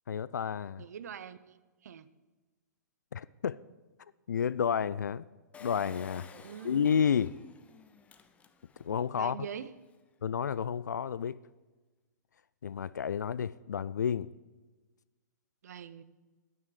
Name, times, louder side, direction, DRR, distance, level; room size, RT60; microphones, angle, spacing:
voice 1, 0.1-0.8 3.1-3.6 4.3-5.2 5.6-6.3 6.6-7.4 8.8-9.4 10.2-11.4 12.6-14.3, left 7 dB, 70° left, 0.3 m, -30 dB
voice 2, 0.8-1.6 1.8-2.1 6.3-6.8 9.2-9.7 15.6-16.0, right 8 dB, 60° right, 0.7 m, -43 dB
Engine, 5.5-9.0 9.5-9.6 9.8-9.9, left 5 dB, 15° left, 0.8 m, -52 dB
10.5 x 9.4 x 7.5 m
figure-of-eight pair, 115°, 10 cm